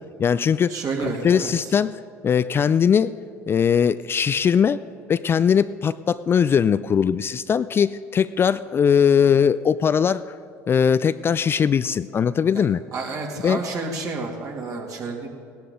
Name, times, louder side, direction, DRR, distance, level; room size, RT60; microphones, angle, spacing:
voice 1, 0.2-3.1 3.5-4.8 5.1-10.3 10.7-12.8 13.4-13.6, left 7 dB, 30° left, 15 dB, 0.3 m, -20 dB
voice 2, 0.7-1.5 12.5-12.6 12.9-15.3, right 3 dB, 50° right, 0 dB, 2.5 m, -30 dB
17.5 x 11.5 x 3.8 m, 2.4 s
hypercardioid pair, 70°, 7 cm